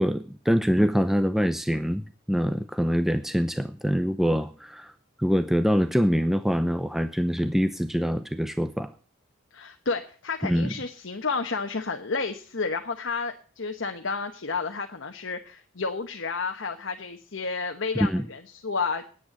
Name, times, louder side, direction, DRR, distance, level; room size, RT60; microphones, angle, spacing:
voice 1, 0.0-4.9 5.2-8.9 10.4-10.7 17.9-18.3, equal, ahead, 10 dB, 0.6 m, -24 dB
voice 2, 9.5-19.0, left 4 dB, 65° left, 5 dB, 1.2 m, -31 dB
10.0 x 8.4 x 8.0 m, 0.40 s
head